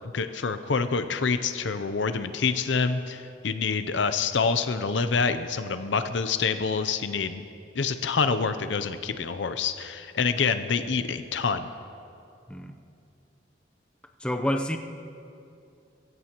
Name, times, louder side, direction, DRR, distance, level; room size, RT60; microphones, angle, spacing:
voice 1, 0.1-7.4 7.8-11.7, left 5 dB, 70° left, 10 dB, 0.6 m, -27 dB
voice 2, 14.2-14.8, equal, 5° left, 5 dB, 0.6 m, -28 dB
22.0 x 16.5 x 3.0 m, 2.6 s
head